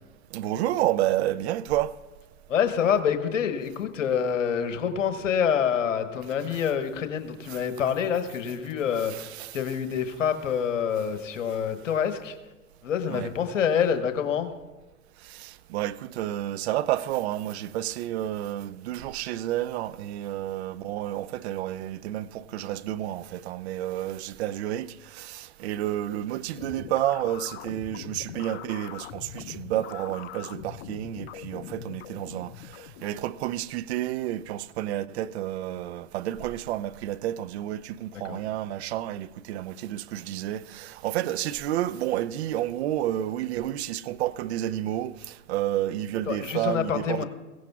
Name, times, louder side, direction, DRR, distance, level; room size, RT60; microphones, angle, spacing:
voice 1, 0.3-2.0 9.1-9.5 13.1-13.3 15.2-47.2, right 13 dB, 55° right, 0.6 m, -30 dB
voice 2, 2.5-12.4 12.8-14.5 38.2-38.4 46.3-47.3, left 7 dB, 70° left, 1.2 m, -27 dB
sound 1, 26.6-33.3, left 13 dB, 50° left, 0.6 m, -42 dB
22.5 x 16.0 x 2.4 m
hypercardioid pair, 100°, 39 cm